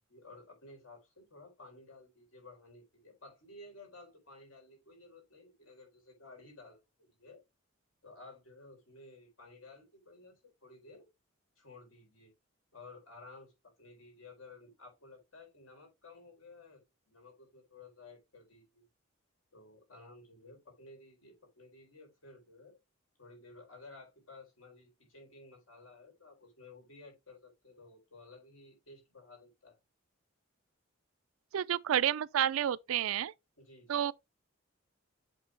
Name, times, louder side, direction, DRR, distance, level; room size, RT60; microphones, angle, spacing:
voice 1, 0.1-7.4 8.0-11.1 11.6-12.3 12.7-18.9 19.5-22.8 23.2-29.8 33.6-34.1, left 3 dB, 85° left, 4.1 m, -55 dB
voice 2, 31.5-33.3 33.9-34.1, right 10 dB, 85° right, 0.4 m, -30 dB
8.1 x 3.7 x 3.3 m
head